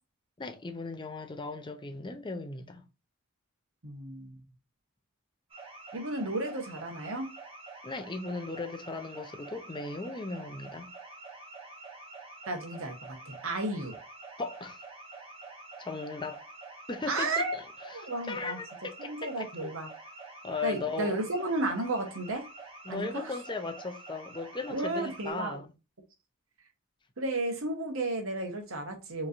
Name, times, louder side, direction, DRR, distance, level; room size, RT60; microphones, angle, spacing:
voice 1, 0.4-2.8 7.8-10.9 14.4-14.8 15.8-16.5 16.9-19.7 20.4-21.2 22.9-25.7, left 3 dB, 20° left, 0.6 m, -37 dB
voice 2, 3.8-4.4 5.9-7.3 12.5-14.0 17.1-17.6 17.9-18.6 19.0-19.9 20.6-22.4 22.9-23.3 24.7-25.6 27.2-29.3, right 2 dB, 70° right, 1.3 m, -33 dB
sound 1, 5.5-25.3, right 3 dB, 25° right, 1.2 m, -47 dB
5.1 x 3.2 x 2.6 m
head